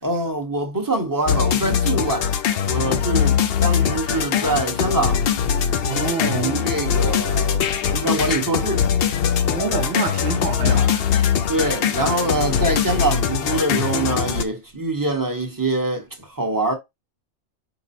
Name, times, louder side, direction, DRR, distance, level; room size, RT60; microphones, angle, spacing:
voice 1, 0.0-2.3 2.6-5.2 6.3-7.6 7.9-8.8 10.6-10.9 11.5-16.7, right 2 dB, 15° right, 0.9 m, -24 dB
sound 1, 1.3-14.4, left 8 dB, 60° left, 0.6 m, -21 dB
voice 2, 5.8-6.5 9.5-11.1, right 5 dB, 65° right, 0.9 m, -26 dB
4.8 x 2.0 x 4.1 m
omnidirectional pair, 1.4 m